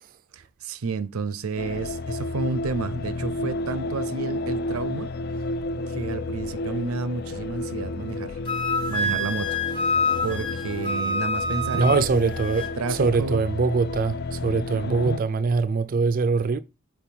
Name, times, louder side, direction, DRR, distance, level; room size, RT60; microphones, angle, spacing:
voice 1, 0.3-5.1 5.9-8.4 8.8-13.5 14.8-15.2, right 4 dB, 90° right, 0.6 m, -31 dB
sound 1, 1.6-15.2, left 2 dB, 50° left, 0.4 m, -31 dB
Wind instrument woodwind instrument, 8.5-12.7, left 2 dB, 25° left, 1.0 m, -27 dB
voice 2, 11.7-16.6, right 4 dB, 40° right, 0.4 m, -23 dB
5.4 x 4.5 x 4.5 m
head